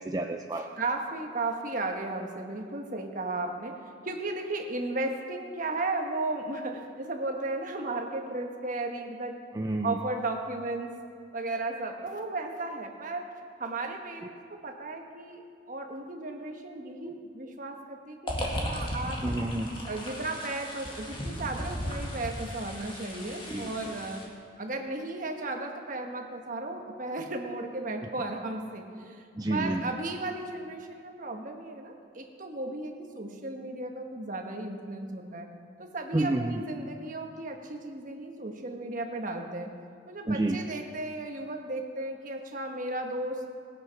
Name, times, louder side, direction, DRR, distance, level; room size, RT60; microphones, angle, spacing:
voice 1, 0.0-0.7 9.5-10.0 17.1-17.2 19.2-19.7 23.5-23.7 29.3-29.9 36.1-36.6 40.3-40.6, right 2 dB, 20° right, 2 dB, 0.5 m, -29 dB
voice 2, 0.5-3.7 4.0-9.4 9.8-11.0 11.3-13.3 13.6-19.2 19.9-24.2 24.6-35.5 35.8-39.7 40.1-43.4, right 2 dB, 40° right, 3 dB, 1.3 m, -35 dB
sound 1, 18.3-24.2, equal, 25° left, 1.8 m, -36 dB
18.5 x 8.5 x 5.8 m, 2.3 s
head